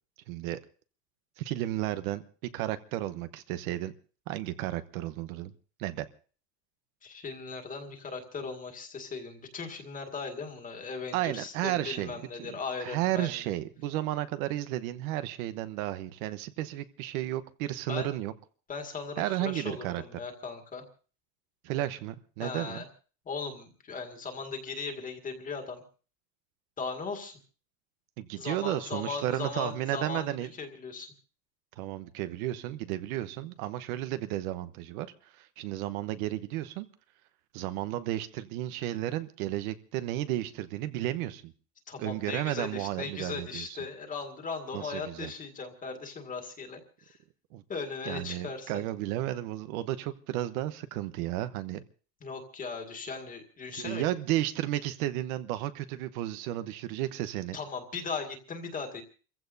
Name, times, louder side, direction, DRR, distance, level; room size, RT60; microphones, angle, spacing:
voice 1, 0.3-0.6 1.4-2.2 2.5-3.9 4.3-5.5 5.8-6.1 11.1-12.5 12.8-18.3 19.2-20.0 21.6-22.8 28.2-30.5 31.8-35.1 35.3-36.9 37.5-41.5 42.0-43.8 44.7-45.3 47.5-47.6 48.1-51.8 53.7-57.6, right 14 dB, 65° right, 11 dB, 1.1 m, -33 dB
voice 2, 7.0-13.4 17.9-18.2 18.7-20.9 22.4-22.9 23.3-25.8 26.8-27.4 28.4-31.1 41.9-47.2 47.7-48.8 52.2-54.0 57.5-59.0, left 4 dB, 15° left, 4 dB, 2.0 m, -38 dB
29.0 x 15.5 x 2.7 m, 0.40 s
cardioid pair, 170°, 46 cm